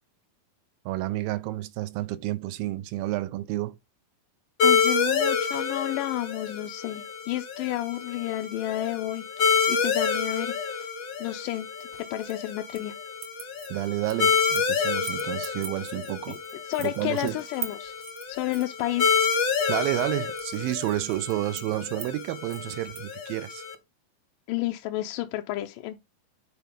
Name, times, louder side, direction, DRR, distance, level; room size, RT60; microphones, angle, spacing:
voice 1, 0.9-3.8 13.7-16.4 16.8-17.4 19.7-23.6, right 16 dB, 85° right, 2.5 m, -30 dB
voice 2, 4.6-9.2 9.7-10.9 11.2-12.9 16.3-16.4 16.6-18.0 18.3-19.4 24.5-26.0, left 15 dB, 80° left, 2.1 m, -31 dB
sound 1, 4.6-23.7, left 5 dB, 55° left, 1.2 m, -28 dB
sound 2, 11.8-12.9 13.2-14.7 15.0-23.1, right 10 dB, 60° right, 1.5 m, -42 dB
10.5 x 4.5 x 3.7 m
omnidirectional pair, 4.2 m